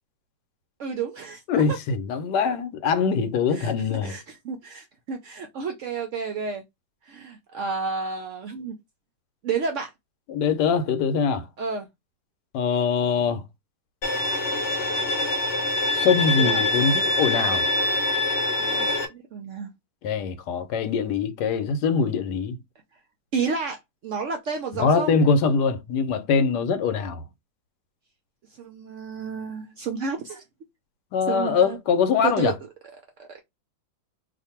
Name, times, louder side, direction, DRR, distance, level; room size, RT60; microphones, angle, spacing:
voice 1, 0.8-1.4 3.6-3.7 4.0-6.6 7.1-8.7 9.4-9.9 11.6-11.9 16.4-16.7 18.6-19.7 23.3-25.1 28.6-30.4 31.3-31.8 32.2-32.5 33.2-33.4, right 5 dB, 70° right, 0.7 m, -31 dB
voice 2, 1.5-4.1 10.3-11.5 12.5-13.4 15.9-17.7 20.0-22.6 24.7-27.2 31.1-32.5, left 5 dB, 80° left, 1.2 m, -23 dB
Bowed string instrument, 14.0-19.0, left 2 dB, 50° left, 0.8 m, -24 dB
2.6 x 2.5 x 4.2 m
omnidirectional pair, 1.8 m